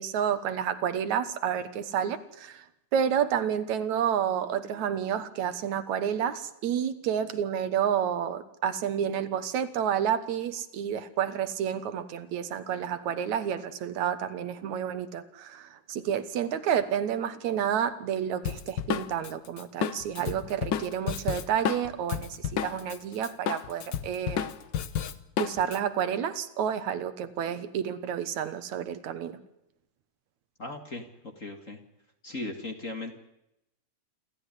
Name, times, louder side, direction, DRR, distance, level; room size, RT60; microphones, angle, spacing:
voice 1, 0.0-2.7 2.9-24.5 25.4-29.4, right 9 dB, 75° right, 12 dB, 2.6 m, -30 dB
Drum kit, 18.4-23.0 23.2-25.8, left 8 dB, 65° left, 1.1 m, -31 dB
voice 2, 30.6-31.1 31.4-31.8 32.2-33.1, left 2 dB, 30° left, 5 dB, 2.2 m, -37 dB
27.5 x 13.0 x 9.9 m, 0.85 s
omnidirectional pair, 3.3 m